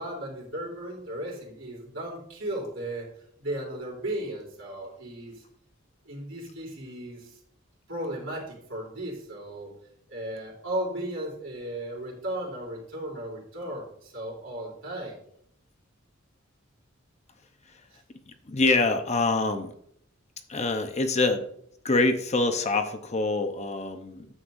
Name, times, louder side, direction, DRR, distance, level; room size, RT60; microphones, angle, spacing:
voice 1, 0.0-3.1 3.4-5.4 6.0-7.4 7.9-9.7 10.1-15.2, right 1 dB, 70° right, -2 dB, 3.3 m, -35 dB
voice 2, 18.3-19.7 20.5-21.4 21.8-24.3, left 3 dB, 35° left, 7 dB, 0.7 m, -25 dB
9.8 x 7.6 x 2.6 m, 0.69 s
head